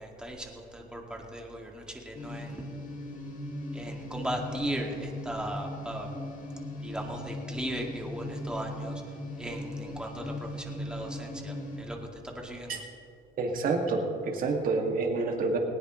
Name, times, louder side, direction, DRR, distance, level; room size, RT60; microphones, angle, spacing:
voice 1, 0.0-2.7 3.7-6.1 6.8-9.0 9.4-12.0 12.2-12.7, right 1 dB, 5° right, 0 dB, 2.1 m, -37 dB
sound 1, 2.1-11.8, left 1 dB, 50° left, 2.6 m, -39 dB
voice 2, 13.4-15.6, right 3 dB, 55° right, 2 dB, 2.1 m, -28 dB
19.0 x 18.0 x 3.1 m, 2.7 s
cardioid pair, 110°, 17 cm